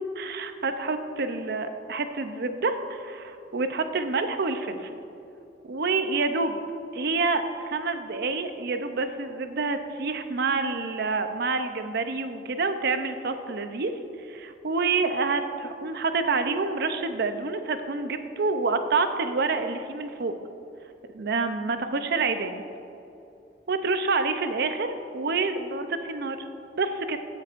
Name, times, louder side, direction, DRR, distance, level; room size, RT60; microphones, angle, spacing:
voice 1, 0.2-5.0 5.6-6.6 6.9-13.9 14.3-20.3 21.1-22.6 23.7-26.4 26.7-27.2, right 3 dB, 65° right, 8 dB, 0.6 m, -27 dB
15.0 x 8.0 x 2.5 m, 2.8 s
head